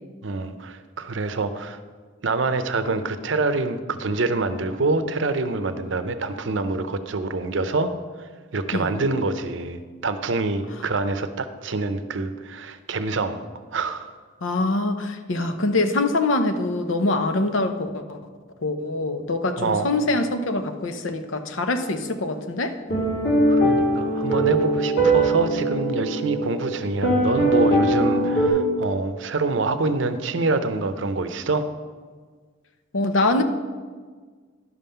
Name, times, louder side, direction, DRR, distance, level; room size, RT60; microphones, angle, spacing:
voice 1, 0.2-1.8 2.2-7.9 8.5-13.4 13.7-14.1 19.6-19.9 23.5-31.7, right 3 dB, 70° right, 10 dB, 0.6 m, -26 dB
voice 2, 14.4-18.2 18.6-22.8 32.9-33.4, left 2 dB, 80° left, 8 dB, 0.8 m, -24 dB
sound 1, 22.9-28.5, right 1 dB, 55° left, 2.1 m, -21 dB
11.0 x 5.5 x 5.6 m, 1.5 s
head